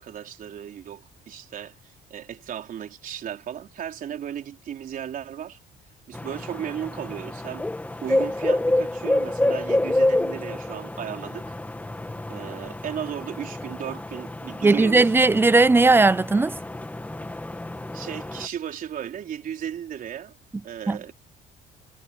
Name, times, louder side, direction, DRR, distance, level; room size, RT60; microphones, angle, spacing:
voice 1, 0.0-5.6 6.1-7.7 8.0-11.5 12.3-15.1 17.9-20.4 20.6-21.1, right 9 dB, 55° right, 4.0 m, -35 dB
sound 1, 6.1-18.5, left 1 dB, 10° left, 2.3 m, -28 dB
voice 2, 14.6-16.5 20.9-21.0, right 3 dB, 15° right, 0.5 m, -17 dB
cardioid pair, 110°, 17 cm